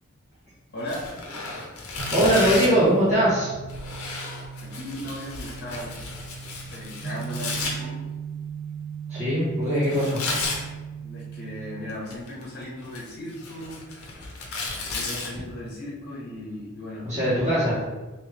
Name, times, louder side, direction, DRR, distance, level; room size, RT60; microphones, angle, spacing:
voice 1, 0.7-1.1 4.6-6.0 6.7-8.0 11.0-14.4 14.9-17.2, left 1 dB, 50° left, -4 dB, 1.2 m, -37 dB
Tearing, 0.8-2.9 3.7-7.7 9.8-10.6 11.9-12.4 12.8-15.3, left 3 dB, 75° left, 0.8 m, -33 dB
sound 1, 2.0-15.6, right 6 dB, 80° right, 0.7 m, -39 dB
voice 2, 2.1-3.5 9.1-10.6 17.0-17.8, equal, 35° right, -12 dB, 1.5 m, -21 dB
3.3 x 3.3 x 3.4 m, 1.2 s
head